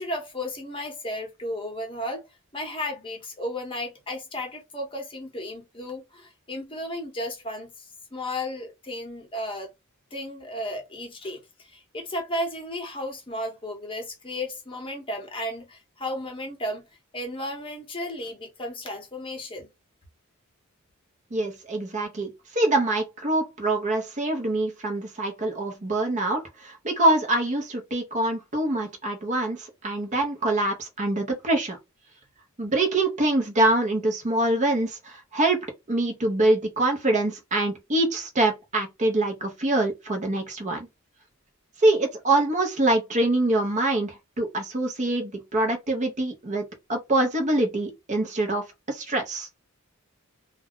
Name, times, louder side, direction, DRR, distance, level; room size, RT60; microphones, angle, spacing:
voice 1, 0.0-2.2 2.5-9.7 10.1-16.8 17.1-19.7, left 1 dB, 25° left, 0.9 m, -34 dB
voice 2, 21.3-31.8 32.6-40.9 41.8-49.5, right 2 dB, 35° right, 0.7 m, -25 dB
2.3 x 2.2 x 3.6 m
head